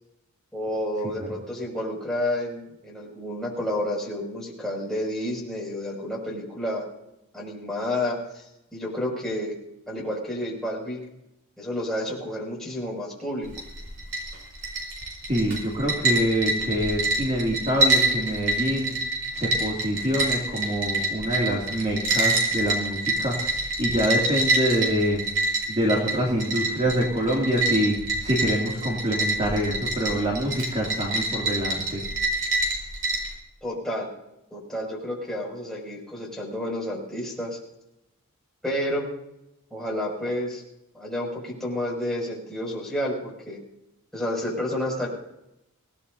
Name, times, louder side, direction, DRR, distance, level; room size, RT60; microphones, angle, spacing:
voice 1, 0.5-6.8 7.3-9.5 9.9-11.0 11.6-13.5 33.6-34.1 34.5-37.6 38.6-39.0 39.7-40.6 40.9-43.6 44.1-45.1, left 1 dB, ahead, -4 dB, 6.5 m, -30 dB
sound 1, 13.4-33.3, right 2 dB, 60° right, 5.8 m, -27 dB
voice 2, 15.3-19.0 19.3-23.5 23.8-25.2 25.7-32.0, equal, 30° right, -3 dB, 2.7 m, -25 dB
26.0 x 18.0 x 2.8 m, 0.87 s
head